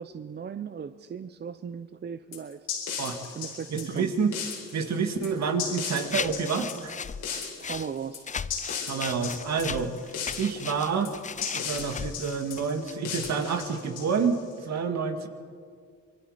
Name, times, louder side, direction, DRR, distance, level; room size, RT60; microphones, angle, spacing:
voice 1, 0.0-3.0 3.3-4.1 7.6-8.2, right 7 dB, 35° right, 11 dB, 0.7 m, -37 dB
sound 1, 2.3-14.5, left 7 dB, 80° left, 4.5 m, -37 dB
voice 2, 3.7-4.3 4.7-6.9 8.8-9.9 10.4-11.1 11.5-15.3, right 5 dB, 60° right, 5 dB, 2.3 m, -28 dB
sound 2, 6.0-7.9 8.3-12.9 13.2-13.3, left 6 dB, 25° left, 0.5 m, -36 dB
26.0 x 22.0 x 5.1 m, 2.1 s
cardioid pair, 90°, 30 cm